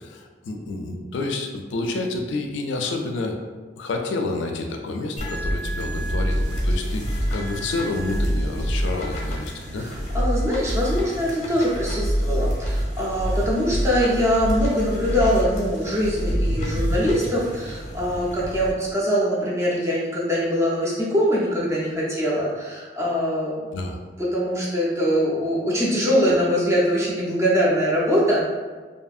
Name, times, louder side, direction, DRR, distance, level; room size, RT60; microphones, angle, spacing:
voice 1, 0.0-3.4 3.8-9.9 23.7-24.0, left 2 dB, 85° left, 3 dB, 0.3 m, -29 dB
sound 1, 5.2-18.7, equal, 40° left, 0.6 m, -27 dB
sound 2, 6.3-17.8, equal, 70° right, 0.5 m, -40 dB
voice 2, 10.1-23.7 24.2-28.5, equal, 15° right, -6 dB, 0.5 m, -23 dB
2.7 x 2.6 x 2.3 m, 1.4 s
head